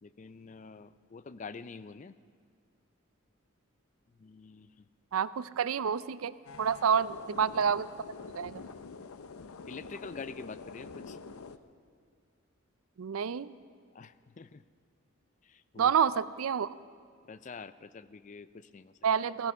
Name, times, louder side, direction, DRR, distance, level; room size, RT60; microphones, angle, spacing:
voice 1, 0.0-2.1 4.2-4.9 9.7-11.2 13.9-14.6 15.4-15.9 17.2-18.9, left 4 dB, 35° left, 15 dB, 0.4 m, -46 dB
voice 2, 5.1-7.9 8.3-8.5 13.0-13.5 15.8-16.7 19.0-19.5, right 7 dB, 80° right, 17 dB, 0.4 m, -28 dB
sound 1, 6.5-11.6, left 4 dB, 90° left, 0.6 m, -46 dB
16.5 x 15.0 x 5.5 m, 2.1 s
head